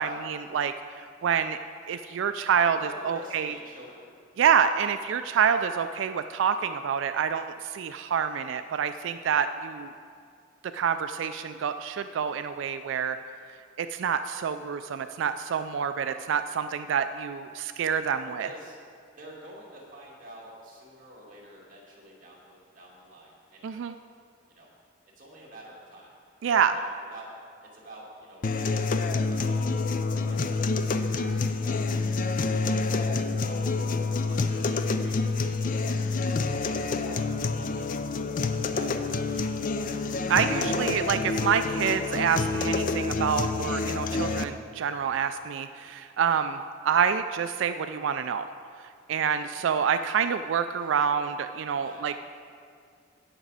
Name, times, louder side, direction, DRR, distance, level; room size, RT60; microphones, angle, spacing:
voice 1, 0.0-1.6 1.9-2.8 3.0-3.5 4.4-9.9 10.7-13.2 13.8-18.5 23.6-23.9 26.4-26.7 40.3-48.5 49.1-52.3, right 7 dB, 65° right, 10 dB, 0.3 m, -27 dB
voice 2, 2.6-4.1 18.4-18.8 19.2-23.9 24.5-24.7 25.2-26.1 26.7-26.8 27.1-27.3 27.6-29.6 30.1-30.5 30.8-33.7 34.2-36.0 36.3-37.3 37.6-38.0 38.6-40.1 49.4-49.8 51.7-52.1, right 1 dB, 40° right, -4 dB, 2.3 m, -48 dB
sound 1, 28.4-44.4, left 3 dB, 40° left, 0.4 m, -28 dB
17.0 x 6.0 x 4.1 m, 2.3 s
head